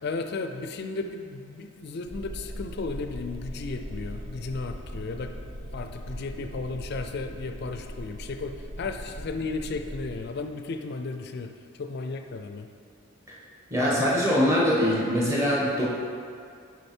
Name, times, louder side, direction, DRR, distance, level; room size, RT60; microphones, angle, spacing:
voice 1, 0.0-5.3 5.7-11.5 11.8-12.7, left 3 dB, 50° left, 6 dB, 0.4 m, -34 dB
sound 1, 2.1-10.2, equal, 70° right, 0.8 m, -40 dB
voice 2, 13.7-15.8, equal, 15° right, -6 dB, 1.2 m, -23 dB
6.6 x 5.1 x 4.4 m, 2.4 s
head